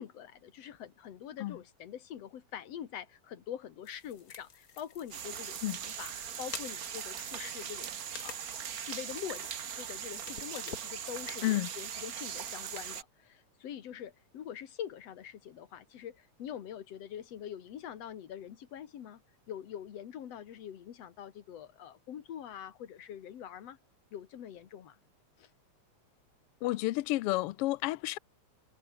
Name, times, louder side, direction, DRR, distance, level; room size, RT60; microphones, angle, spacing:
voice 1, 0.0-7.9 8.2-8.4 8.7-9.4 9.8-19.2 19.5-23.8 24.1-25.0 25.4-25.5, left 9 dB, 60° left, 2.6 m, -44 dB
sound 1, 3.8-11.4, left 6 dB, 35° left, 1.6 m, -50 dB
sound 2, 5.1-13.0, right 8 dB, 60° right, 0.9 m, -40 dB
voice 2, 26.6-28.2, left 17 dB, 80° left, 1.3 m, -30 dB
omnidirectional pair, 3.3 m